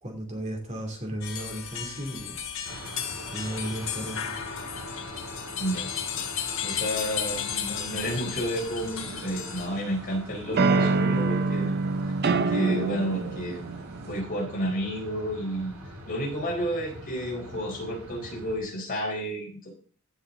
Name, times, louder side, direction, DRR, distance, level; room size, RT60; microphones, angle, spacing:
voice 1, 0.0-2.4 3.3-4.3 10.6-11.0, right 1 dB, 35° right, 1 dB, 2.6 m, -35 dB
sound 1, 1.2-9.7, left 8 dB, 65° left, 1.3 m, -34 dB
sound 2, 2.6-18.6, right 1 dB, 85° right, 3.3 m, -43 dB
voice 2, 5.6-5.9 6.6-11.7 12.3-13.6 14.1-15.7 16.1-19.7, equal, 40° left, -2 dB, 4.4 m, -31 dB
sound 3, 9.0-9.9 10.6-14.2, right 4 dB, 50° right, 0.7 m, -26 dB
15.5 x 6.3 x 3.8 m, 0.42 s
head